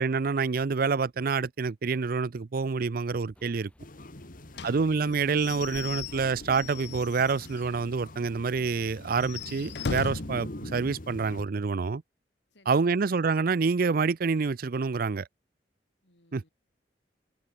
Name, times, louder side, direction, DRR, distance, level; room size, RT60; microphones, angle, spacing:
voice 1, 0.0-3.7 4.6-12.0 12.7-15.3 16.3-16.5, right 4 dB, 55° right, 0.5 m, -27 dB
sound 1, 3.3-7.5, equal, 5° left, 6.9 m, -64 dB
sound 2, 3.8-11.4, left 1 dB, 50° left, 2.0 m, -44 dB
voice 2, 4.0-4.8 12.5-13.1 16.0-16.5, left 1 dB, 90° left, 6.8 m, -61 dB
Slam / Squeak / Wood, 4.5-7.7 8.1-8.2 8.5-8.6 9.1-10.4, left 5 dB, 70° left, 0.6 m, -38 dB
head